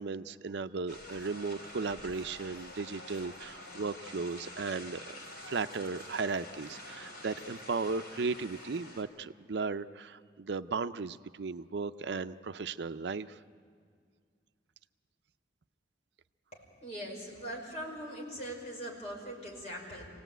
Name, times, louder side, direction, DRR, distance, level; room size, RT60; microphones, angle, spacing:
voice 1, 0.0-5.2 5.5-13.4, right 4 dB, 75° right, 11 dB, 0.5 m, -36 dB
sound 1, 0.9-9.0, left 1 dB, 60° left, 4.2 m, -47 dB
voice 2, 16.8-20.1, equal, 35° left, -2 dB, 5.5 m, -41 dB
26.5 x 18.0 x 9.2 m, 2.1 s
head